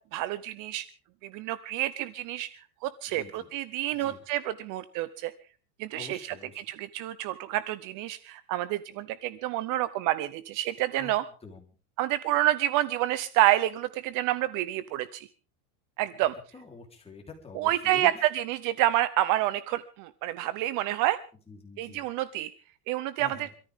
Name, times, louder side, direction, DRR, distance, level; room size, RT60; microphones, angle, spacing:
voice 1, 0.1-0.8 1.2-2.5 2.8-5.3 5.8-11.2 12.0-15.3 16.0-16.3 17.6-21.2 21.8-22.5 22.9-23.5, right 14 dB, 45° right, 16 dB, 0.7 m, -28 dB
voice 2, 3.1-3.5 3.9-4.2 5.9-6.6 11.0-11.2 11.4-11.6 16.5-18.1 21.5-22.0 23.2-23.5, left 4 dB, 15° left, 1 dB, 3.7 m, -46 dB
26.0 x 14.0 x 3.6 m, 0.38 s
supercardioid pair, 150°, 46 cm